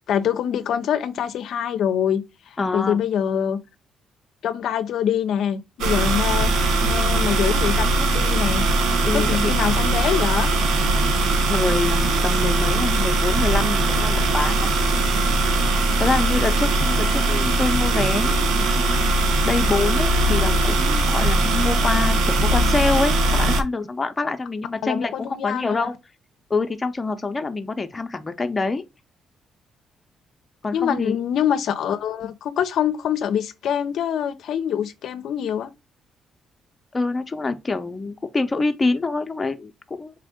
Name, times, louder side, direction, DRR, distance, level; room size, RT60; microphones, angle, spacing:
voice 1, 0.1-3.6 4.4-6.5 6.8-8.7 9.1-10.5 24.8-25.9 30.7-35.7, left 9 dB, 75° left, 0.5 m, -25 dB
voice 2, 2.6-3.0 9.0-9.5 11.5-14.7 16.0-18.4 18.7-25.9 26.5-28.8 30.6-31.2 36.9-40.1, left 3 dB, 25° left, 0.6 m, -26 dB
sound 1, 5.8-23.6, right 2 dB, 85° right, 0.7 m, -20 dB
4.3 x 2.5 x 3.5 m
cardioid pair, 90°, 0 cm